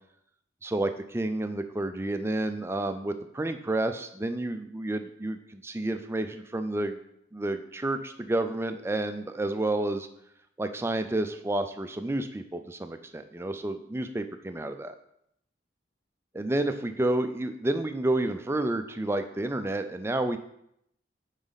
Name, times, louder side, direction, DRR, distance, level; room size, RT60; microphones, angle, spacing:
voice 1, 0.6-7.0 7.3-10.1 10.6-15.0 16.3-20.4, right 2 dB, 15° right, 8 dB, 0.4 m, -30 dB
8.8 x 4.1 x 4.0 m, 0.76 s
head